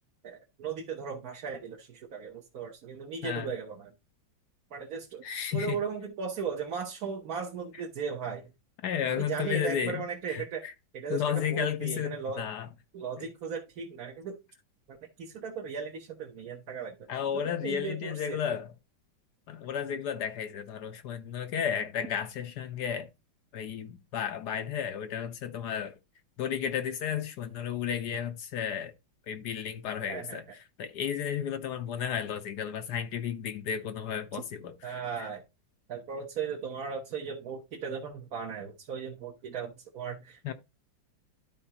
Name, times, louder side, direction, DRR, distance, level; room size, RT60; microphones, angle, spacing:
voice 1, 0.2-3.9 4.7-5.2 5.5-8.5 9.1-10.6 10.9-12.4 12.9-14.4 15.2-17.0 17.3-18.4 30.1-30.4 34.8-35.4 35.9-40.5, right 6 dB, 55° right, 1.4 m, -37 dB
voice 2, 5.2-5.8 7.7-7.8 8.8-10.7 11.1-12.7 13.2-13.3 17.1-18.7 19.5-23.1 23.5-26.0 26.4-28.9 29.3-35.3 40.4-40.5, left 8 dB, 70° left, 1.2 m, -33 dB
12.5 x 4.4 x 2.9 m
omnidirectional pair, 2.1 m